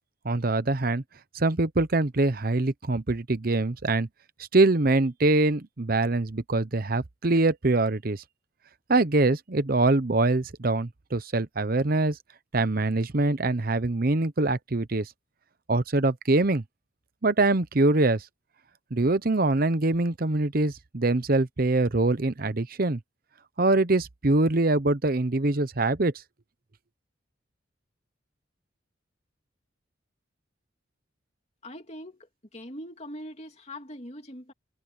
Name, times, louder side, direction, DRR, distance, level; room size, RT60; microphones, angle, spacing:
voice 1, 0.2-1.0 1.3-4.1 4.5-8.2 8.9-12.2 12.5-15.1 15.7-16.6 17.2-18.3 18.9-23.0 23.6-26.1, right 2 dB, 50° right, 0.9 m, -24 dB
voice 2, 31.6-34.5, equal, 35° left, 3.0 m, -42 dB
head